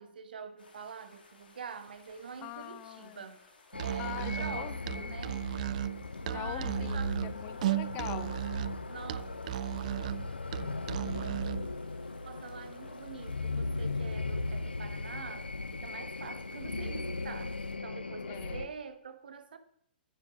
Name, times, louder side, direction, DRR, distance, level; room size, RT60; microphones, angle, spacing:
voice 1, 0.0-3.5 3.8-5.5 6.3-7.2 8.9-9.2 12.2-19.6, right 6 dB, 65° right, 1.2 m, -45 dB
sound 1, 0.6-17.7, left 3 dB, 70° left, 2.4 m, -61 dB
voice 2, 2.4-3.3 4.0-5.2 6.3-8.4 18.3-18.7, left 17 dB, 35° left, 0.4 m, -43 dB
sound 2, 3.7-18.7, left 3 dB, 85° left, 0.5 m, -38 dB
Musical instrument, 3.7-11.7, right 13 dB, 50° right, 0.3 m, -35 dB
9.6 x 8.3 x 5.1 m
figure-of-eight pair, 110°, 5 cm